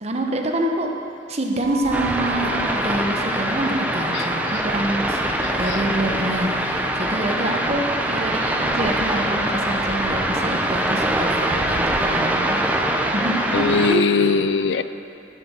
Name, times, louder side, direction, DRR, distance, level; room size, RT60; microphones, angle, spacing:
voice 1, 0.0-0.9 1.3-12.6 13.1-14.4, right 1 dB, 35° right, 2 dB, 1.0 m, -26 dB
sound 1, 1.6-12.2, right 4 dB, 65° right, 0.7 m, -38 dB
sound 2, 1.9-14.0, right 1 dB, 10° right, 0.6 m, -23 dB
voice 2, 13.5-14.8, left 5 dB, 75° left, 12 dB, 0.4 m, -21 dB
11.0 x 6.5 x 6.4 m, 2.4 s
head